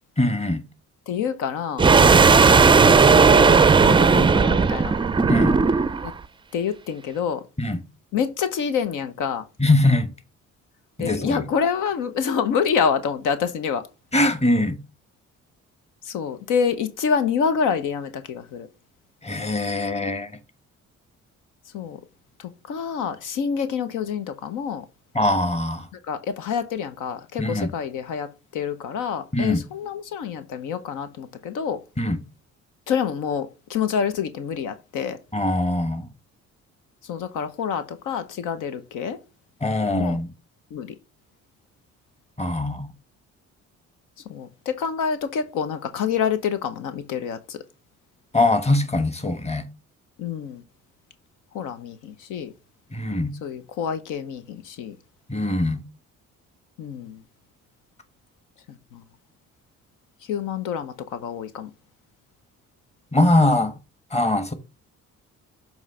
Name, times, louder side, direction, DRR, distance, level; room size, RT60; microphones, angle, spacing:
voice 1, 0.2-0.6 2.0-2.2 5.3-5.6 7.6-7.8 9.6-10.1 11.0-11.5 14.1-14.8 19.2-20.3 25.1-25.8 27.4-27.7 29.3-29.7 32.0-32.2 35.3-36.1 39.6-40.3 42.4-42.9 48.3-49.7 52.9-53.3 55.3-55.8 63.1-63.7 64.1-64.5, left 1 dB, 20° left, 1.3 m, -22 dB
voice 2, 1.1-1.9 2.7-4.9 6.0-6.1 6.5-7.4 8.1-9.4 11.0-13.8 16.1-18.7 21.7-22.0 22.4-24.8 26.1-28.3 28.5-31.8 32.9-35.2 37.1-39.2 39.9-40.2 40.7-40.9 44.3-47.6 50.2-50.6 51.5-52.5 53.4-55.0 56.8-57.2 58.9-59.0 60.3-61.7, left 7 dB, 85° left, 0.9 m, -27 dB
sound 1, 1.8-6.1, right 5 dB, 15° right, 0.4 m, -15 dB
7.3 x 3.1 x 5.4 m
cardioid pair, 90°, 30 cm